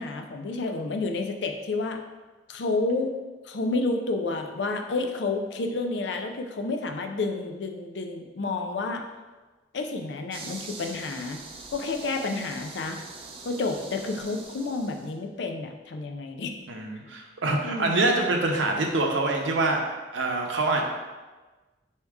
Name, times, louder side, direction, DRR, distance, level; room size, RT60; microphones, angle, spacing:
voice 1, 0.0-2.0 2.5-3.1 3.4-9.0 9.7-11.4 11.7-13.0 13.4-16.5 17.6-18.0, left 3 dB, 65° left, 5 dB, 0.4 m, -30 dB
sound 1, 10.3-15.1, right 3 dB, 30° right, 0.4 m, -43 dB
voice 2, 16.7-19.8 20.1-20.8, right 2 dB, 85° right, 1 dB, 0.7 m, -25 dB
4.6 x 2.8 x 3.5 m, 1.2 s
head